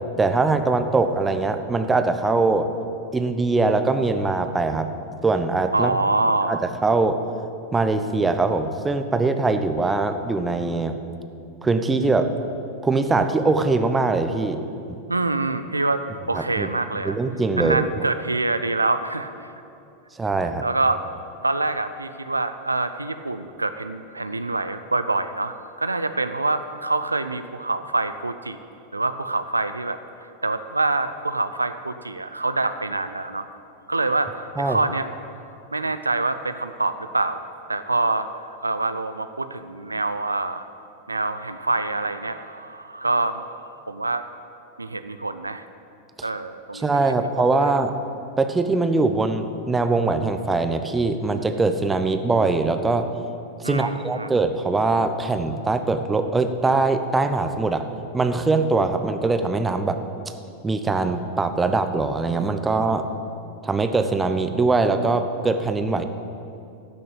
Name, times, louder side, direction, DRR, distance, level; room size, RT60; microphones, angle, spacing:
voice 1, 0.2-2.7 3.1-4.9 5.2-5.9 6.5-7.2 7.7-10.9 11.6-12.3 12.8-14.6 16.3-16.7 17.0-18.1 20.2-20.6 34.6-34.8 46.7-47.9 48.4-53.1 53.6-57.8 58.1-60.0 60.6-63.1 63.6-66.0, right 3 dB, 10° right, 8 dB, 0.8 m, -22 dB
voice 2, 5.7-6.6 15.1-17.2 17.6-19.3 20.6-21.0 21.4-28.6 28.9-30.0 30.4-33.5 33.9-35.1 35.7-37.4 37.7-38.3 38.6-40.7 41.1-43.5 43.9-44.2 44.8-45.6 46.2-47.0 47.4-47.7 53.6-54.3, right 2 dB, 80° right, 10 dB, 0.5 m, -25 dB
13.5 x 6.7 x 8.4 m, 2.6 s
figure-of-eight pair, 90°, 0 cm